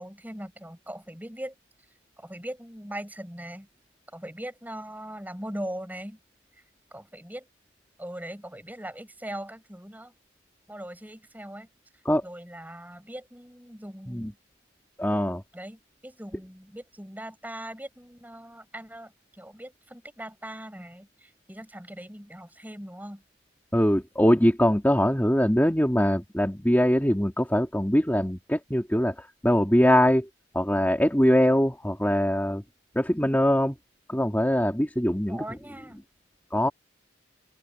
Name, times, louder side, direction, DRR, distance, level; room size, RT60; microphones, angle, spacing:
voice 1, 0.0-1.5 2.2-3.7 4.1-6.2 6.9-7.5 8.0-10.1 10.7-11.7 12.2-14.4 15.5-23.2 35.3-36.0, right 1 dB, 10° right, 7.3 m, -40 dB
voice 2, 15.0-15.4 23.7-30.3 30.5-32.6 32.9-33.8 34.1-35.4 36.5-36.7, equal, 10° left, 2.9 m, -22 dB
open air
head